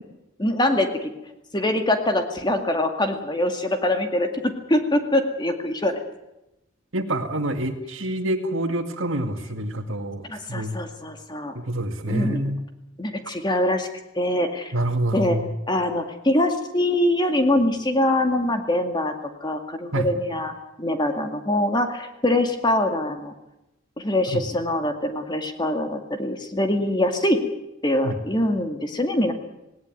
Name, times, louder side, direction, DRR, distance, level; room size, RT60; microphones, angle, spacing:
voice 1, 0.4-1.1 1.5-5.9 10.3-11.5 12.1-12.4 13.0-13.9 14.1-14.7 15.1-15.4 15.7-19.1 19.4-23.3 24.0-27.4 27.8-29.3, left 1 dB, 20° left, 6 dB, 2.2 m, -23 dB
voice 2, 6.9-10.8 11.5-12.6 14.7-15.5 19.9-20.1 24.3-24.4 28.0-28.2, right 1 dB, 70° right, 7 dB, 2.2 m, -27 dB
18.5 x 18.5 x 9.3 m, 0.93 s
head